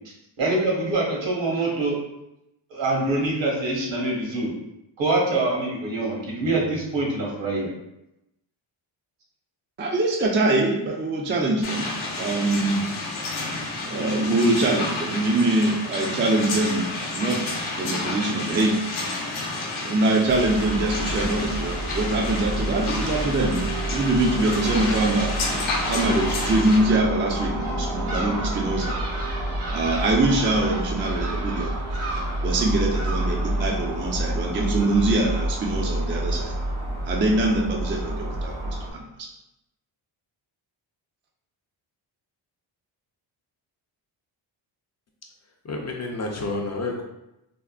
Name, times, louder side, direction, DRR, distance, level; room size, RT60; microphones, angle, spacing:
voice 1, 0.4-2.0 2.7-4.5 5.0-7.7, right 2 dB, 65° right, -2 dB, 1.1 m, -24 dB
voice 2, 9.8-11.9 12.2-12.9 13.8-18.8 19.8-29.0 29.7-31.7 32.4-36.5 37.1-39.3, right 2 dB, 25° right, -1 dB, 0.4 m, -24 dB
sound 1, 11.6-26.8, left 2 dB, 75° left, 0.8 m, -30 dB
Crow / Gull seagull, 20.3-38.9, right 1 dB, 85° right, 0.8 m, -28 dB
voice 3, 45.6-47.0, left 2 dB, 35° left, 0 dB, 0.4 m, -29 dB
3.5 x 2.1 x 2.3 m, 0.88 s
cardioid pair, 70°, 48 cm